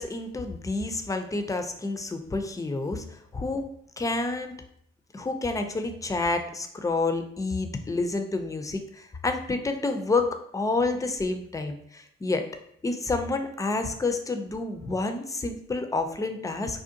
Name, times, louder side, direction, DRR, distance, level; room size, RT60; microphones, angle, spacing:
voice 1, 0.0-3.7 4.0-4.5 5.1-12.5 12.8-16.8, left 3 dB, 10° left, 7 dB, 0.3 m, -29 dB
2.6 x 2.1 x 2.6 m, 0.69 s
hypercardioid pair, 45°, 30 cm